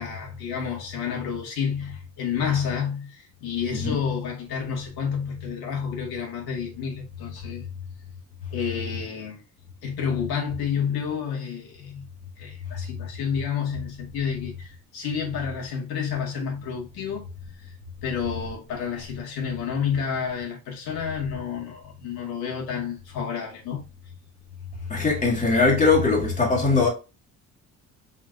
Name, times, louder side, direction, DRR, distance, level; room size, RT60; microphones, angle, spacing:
voice 1, 0.0-7.6 8.5-9.4 9.8-12.1 12.4-17.3 17.6-17.8 18.0-23.8, left 7 dB, 85° left, 1.9 m, -30 dB
voice 2, 24.9-26.9, left 4 dB, 20° left, 1.7 m, -20 dB
4.8 x 4.2 x 2.5 m
cardioid pair, 125°, 36 cm